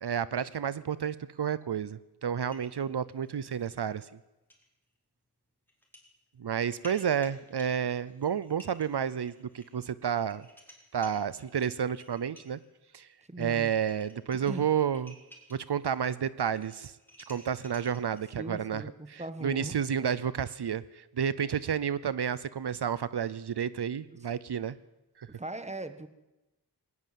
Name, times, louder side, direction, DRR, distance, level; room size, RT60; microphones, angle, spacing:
voice 1, 0.0-4.1 6.4-10.5 10.9-12.6 12.9-13.1 13.4-15.1 15.5-16.9 17.3-18.8 19.1-24.8 25.2-25.3, right 8 dB, 80° right, 17 dB, 0.7 m, -31 dB
sound 1, 2.4-3.7 4.0-4.1 4.5-4.6 5.7-6.1 6.5-12.7 13.4-13.5 13.7-16.2 16.4-18.3, equal, 5° left, 4.7 m, -55 dB
voice 2, 13.3-13.7 14.4-14.8 18.4-19.8 25.3-26.1, right 2 dB, 15° right, 11 dB, 1.4 m, -39 dB
19.0 x 19.0 x 7.6 m, 1.0 s
wide cardioid pair, 70°, 40 cm